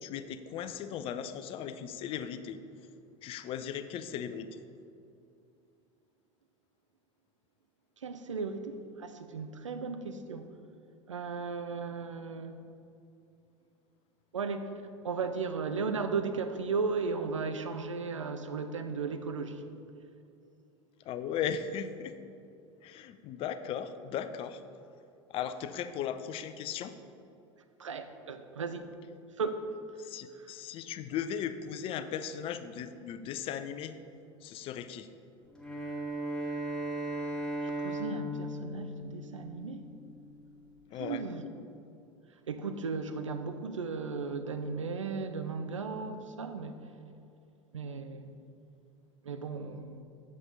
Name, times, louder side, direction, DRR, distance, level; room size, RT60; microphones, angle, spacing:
voice 1, 0.0-2.6 3.2-4.6 21.0-22.2 22.8-24.6 25.3-27.0 30.0-34.0 34.4-35.1 40.9-41.2, left 8 dB, 35° left, 11 dB, 0.5 m, -37 dB
voice 2, 8.0-10.5 11.1-12.6 14.3-14.7 15.0-19.6 27.8-28.9 29.4-29.7 37.6-39.8 41.0-41.4 42.5-46.8 47.7-48.3 49.2-50.0, right 4 dB, 80° right, 9 dB, 0.5 m, -35 dB
Bowed string instrument, 35.5-39.9, right 1 dB, 5° left, 1.5 m, -36 dB
7.6 x 7.3 x 3.9 m, 2.6 s
figure-of-eight pair, 75°, 16 cm